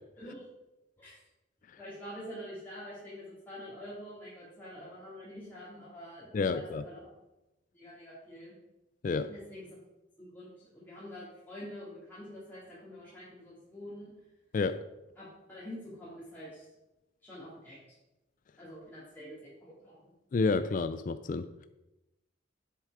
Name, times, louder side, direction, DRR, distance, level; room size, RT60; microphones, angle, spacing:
voice 1, 1.8-7.0 7.7-8.5 9.3-9.7 10.2-14.1 15.2-16.7 17.2-17.8 18.6-20.1, equal, 10° left, -10 dB, 2.7 m, -46 dB
voice 2, 6.3-6.8 9.0-9.3 14.5-14.8 20.3-21.7, left 4 dB, 45° left, 12 dB, 0.3 m, -30 dB
7.6 x 6.6 x 4.9 m, 0.98 s
head